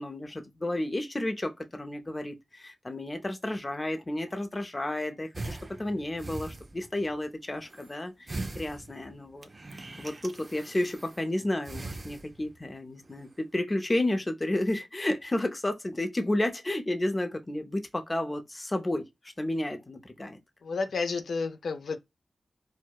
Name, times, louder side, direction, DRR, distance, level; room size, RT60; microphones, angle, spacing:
voice 1, 0.0-9.5 10.0-19.0 19.4-20.4, left 1 dB, 20° left, 0.5 m, -32 dB
sound 1, 5.3-7.1 7.5-8.0 8.3-11.3 11.6-12.7 13.0-13.4, right 2 dB, 35° right, 0.4 m, -41 dB
voice 2, 20.6-22.0, left 4 dB, 85° left, 0.4 m, -31 dB
4.4 x 2.0 x 2.2 m
wide cardioid pair, 125°, 0 cm